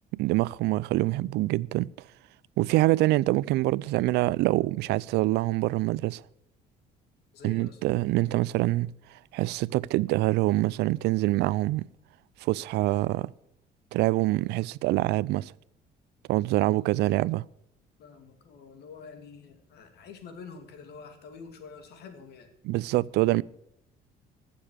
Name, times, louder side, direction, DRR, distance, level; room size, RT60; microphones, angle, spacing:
voice 1, 0.1-1.9 2.6-6.2 7.4-8.9 9.3-11.9 12.4-13.3 13.9-15.5 16.3-17.4 22.6-23.4, right 18 dB, 80° right, 0.4 m, -25 dB
voice 2, 7.3-7.8 16.7-17.3 18.0-22.5, left 5 dB, 75° left, 2.4 m, -47 dB
15.0 x 7.0 x 8.2 m
cardioid pair, 110°, 17 cm